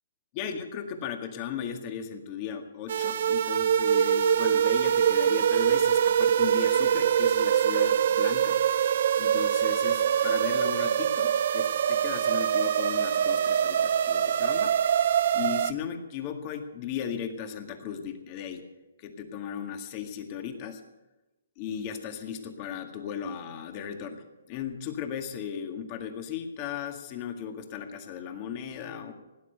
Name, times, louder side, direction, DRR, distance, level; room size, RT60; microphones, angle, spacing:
voice 1, 0.3-8.6 9.2-14.8 15.3-18.7 19.0-20.8 21.6-29.1, left 8 dB, 30° left, 5 dB, 1.9 m, -36 dB
sound 1, 2.9-15.7, right 9 dB, 50° right, 0.4 m, -24 dB
18.0 x 10.0 x 6.8 m, 1.1 s
hypercardioid pair, 155°, 0 cm